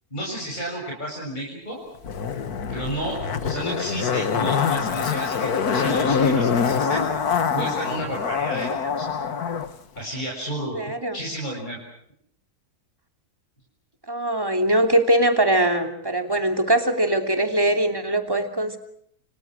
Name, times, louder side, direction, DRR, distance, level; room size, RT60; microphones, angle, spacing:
voice 1, 0.1-1.8 2.7-7.1 7.5-9.1 10.0-10.8 11.1-11.8, right 1 dB, 30° left, -2 dB, 7.1 m, -31 dB
Zipper (clothing), 2.0-9.7 10.0-10.1, left 6 dB, 80° left, 2.0 m, -24 dB
voice 2, 10.7-11.2 14.1-18.8, right 1 dB, 15° right, 5 dB, 3.0 m, -21 dB
29.5 x 28.0 x 6.3 m, 0.70 s
omnidirectional pair, 1.6 m